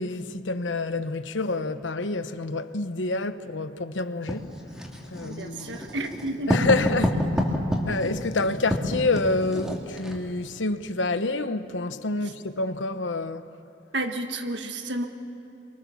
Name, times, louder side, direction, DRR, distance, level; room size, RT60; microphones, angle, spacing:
voice 1, 0.0-4.5 5.1-5.8 6.5-7.2 7.9-13.5, left 2 dB, 85° left, 1.1 m, -28 dB
Writing, 4.3-10.2, equal, 5° right, 2.6 m, -28 dB
voice 2, 5.2-6.7 13.9-15.1, right 1 dB, 70° right, 1.7 m, -31 dB
30.0 x 24.0 x 7.2 m
head